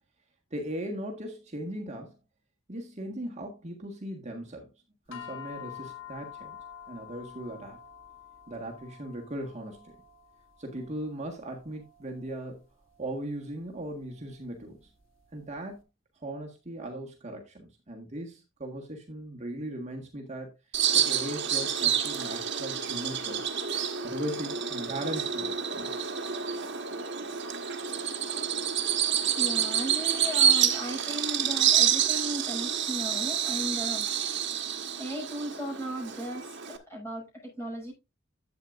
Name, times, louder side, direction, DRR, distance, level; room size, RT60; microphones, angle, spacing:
voice 1, 0.5-2.1 2.7-4.7 5.1-6.6 6.9-7.8 8.5-9.9 10.6-12.6 13.0-14.9 15.3-15.8 16.1-20.5 20.9-23.5 24.0-25.9, right 1 dB, 35° right, 1.6 m, -38 dB
sound 1, 5.1-15.6, left 9 dB, 75° left, 2.1 m, -49 dB
Bird vocalization bird call bird song, 20.7-36.8, right 8 dB, 60° right, 1.4 m, -28 dB
voice 2, 29.3-34.1 35.0-37.9, right 1 dB, 15° left, 6.1 m, -36 dB
11.5 x 8.4 x 2.5 m
head